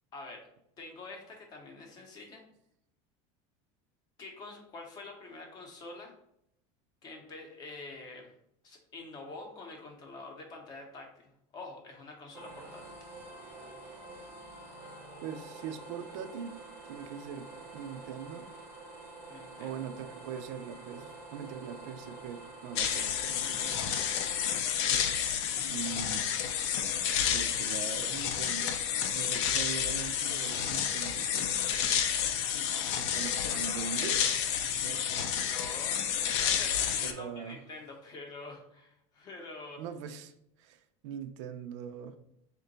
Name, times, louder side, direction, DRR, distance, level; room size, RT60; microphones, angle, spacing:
voice 1, 0.1-0.5 0.8-2.4 4.2-6.1 7.0-8.3 8.6-12.8 19.3-19.8 32.4-33.9 35.3-39.8, left 3 dB, 25° left, 2 dB, 0.6 m, -47 dB
sound 1, 12.3-24.5, right 2 dB, 15° right, 0.6 m, -47 dB
voice 2, 15.2-16.6 16.8-18.5 19.6-24.0 25.6-26.3 27.3-31.7 32.9-34.2 34.8-35.1 37.0-37.6 39.8-40.3 40.6-42.2, right 7 dB, 80° right, 9 dB, 0.4 m, -42 dB
sound 2, 22.8-37.1, left 8 dB, 70° left, 0.4 m, -30 dB
3.7 x 2.2 x 3.8 m, 0.76 s
cardioid pair, 175°, 15 cm